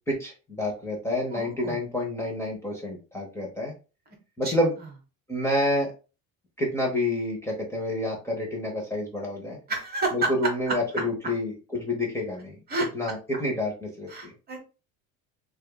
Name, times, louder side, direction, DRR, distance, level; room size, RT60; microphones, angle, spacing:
voice 1, 0.1-3.7 4.4-4.7 5.3-5.9 6.6-9.6 10.1-12.6 12.9-14.3, left 1 dB, 10° left, -1 dB, 0.9 m, -28 dB
voice 2, 1.3-1.8 4.4-4.5 9.7-10.3 10.7-10.8 12.7-12.9 14.1-14.8, right 2 dB, 30° right, 3 dB, 1.1 m, -29 dB
6.2 x 2.5 x 2.3 m, 0.32 s
cardioid pair, 155°, 34 cm